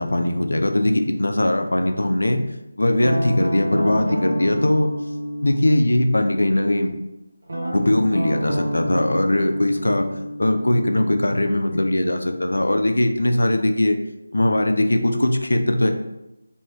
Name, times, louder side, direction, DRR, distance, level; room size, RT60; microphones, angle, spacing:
voice 1, 0.0-2.4 2.8-4.9 5.4-6.9 7.7-10.1 10.4-14.0 14.3-15.9, left 1 dB, 70° left, 5 dB, 0.3 m, -20 dB
Guitar, 3.0-6.8 7.5-12.2, equal, 55° right, 0.6 m, -30 dB
3.1 x 2.7 x 2.2 m, 0.91 s
figure-of-eight pair, 160°, 0 cm